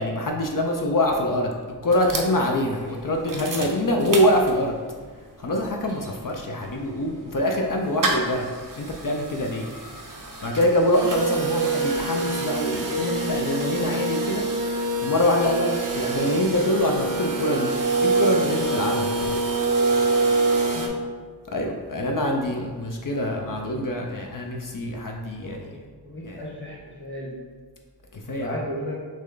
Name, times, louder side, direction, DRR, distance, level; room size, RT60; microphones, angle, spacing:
voice 1, 0.0-1.5 1.8-4.8 5.4-8.5 8.8-9.7 10.0-17.7 18.0-19.5 20.2-20.8 21.5-25.7 26.2-26.4 28.1-28.6, left 1 dB, 55° left, 1 dB, 0.5 m, -25 dB
sound 1, 1.9-4.9 5.3-5.4 5.6-20.9, right 3 dB, 55° right, 0.6 m, -26 dB
voice 2, 25.4-25.8 26.0-27.3 28.3-29.0, left 1 dB, 30° left, -3 dB, 1.2 m, -34 dB
6.2 x 2.2 x 3.8 m, 1.5 s
wide cardioid pair, 75°, 40 cm